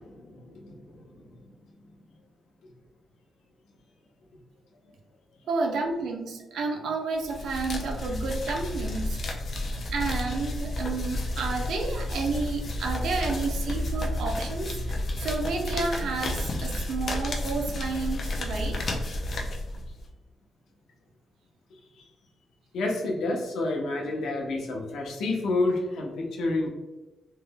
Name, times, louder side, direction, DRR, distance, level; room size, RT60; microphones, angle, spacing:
voice 1, 0.0-1.7 9.2-9.8 21.7-22.1 22.7-26.7, left 2 dB, 80° left, 0 dB, 0.7 m, -30 dB
voice 2, 5.5-9.2 9.9-18.8, right 4 dB, 75° right, 2 dB, 0.6 m, -31 dB
sound 1, 7.2-20.1, left 1 dB, 40° left, 0.5 m, -31 dB
3.2 x 2.2 x 3.4 m, 1.1 s
wide cardioid pair, 175°, 0 cm